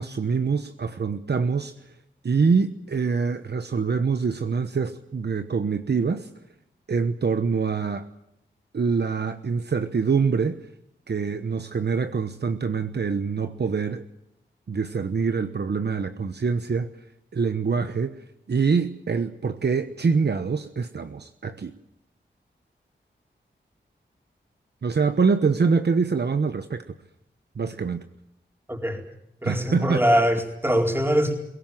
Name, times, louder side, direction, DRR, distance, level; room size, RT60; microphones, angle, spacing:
voice 1, 0.0-1.7 2.2-6.3 6.9-8.1 8.7-10.7 11.1-14.0 14.7-16.9 17.3-18.2 18.5-21.7 24.8-26.8 27.6-28.0 29.4-30.2, right 5 dB, 60° right, 9 dB, 1.1 m, -25 dB
voice 2, 28.7-29.0 29.4-31.4, equal, 10° right, 2 dB, 4.5 m, -22 dB
22.0 x 18.0 x 9.3 m, 0.80 s
wide cardioid pair, 75°, 20 cm